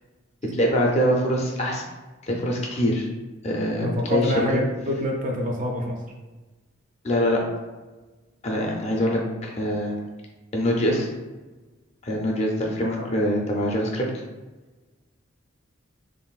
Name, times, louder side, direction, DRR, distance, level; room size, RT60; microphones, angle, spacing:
voice 1, 0.5-1.8 2.3-3.1 3.4-4.5 7.0-7.4 8.4-9.9 10.5-11.1 12.0-14.1, equal, 30° left, 0 dB, 0.4 m, -24 dB
voice 2, 3.8-6.0 12.8-13.1, equal, 40° right, 0 dB, 0.4 m, -26 dB
3.3 x 2.5 x 2.3 m, 1.2 s
head